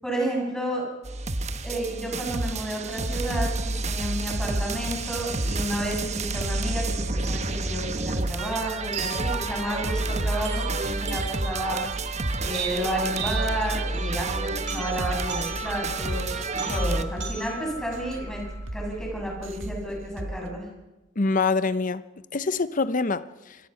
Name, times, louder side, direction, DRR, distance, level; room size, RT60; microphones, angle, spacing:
voice 1, 0.0-0.9 1.6-11.8 12.4-18.4 18.7-20.7, right 1 dB, 5° left, 7.5 m, -31 dB
sound 1, 1.0-17.0, right 2 dB, 35° right, 1.2 m, -29 dB
sound 2, 2.9-20.5, right 1 dB, 80° right, 1.5 m, -39 dB
sound 3, 8.9-18.9, right 4 dB, 65° right, 7.0 m, -38 dB
voice 2, 21.2-22.0 22.3-23.6, left 4 dB, 40° left, 0.8 m, -25 dB
27.5 x 22.0 x 5.8 m
head